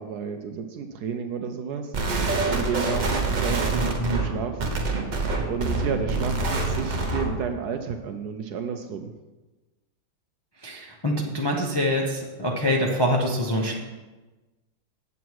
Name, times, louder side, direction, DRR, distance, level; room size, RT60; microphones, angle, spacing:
voice 1, 0.0-1.9 2.5-4.8 5.4-9.1, right 6 dB, 70° right, 6 dB, 1.0 m, -32 dB
sound 1, 1.9-7.4, right 3 dB, 50° right, 0.5 m, -26 dB
voice 2, 3.7-4.4 10.6-13.8, equal, 40° left, -1 dB, 0.3 m, -25 dB
8.2 x 7.1 x 4.7 m, 1.2 s
omnidirectional pair, 2.1 m